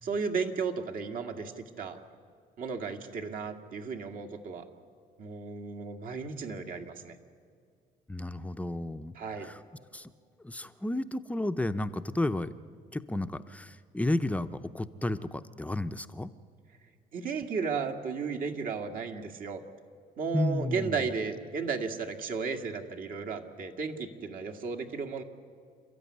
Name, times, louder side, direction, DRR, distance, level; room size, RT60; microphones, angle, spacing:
voice 1, 0.0-2.0 2.6-4.7 5.2-7.2 9.1-9.5 17.1-19.6 20.2-25.2, right 5 dB, 55° right, 5 dB, 2.0 m, -34 dB
voice 2, 8.1-9.1 9.4-9.6 9.9-10.1 10.4-12.5 12.9-16.3 20.3-20.9, left 1 dB, 10° left, 10 dB, 0.7 m, -32 dB
28.5 x 13.0 x 9.7 m, 2.2 s
cardioid pair, 110°, 17 cm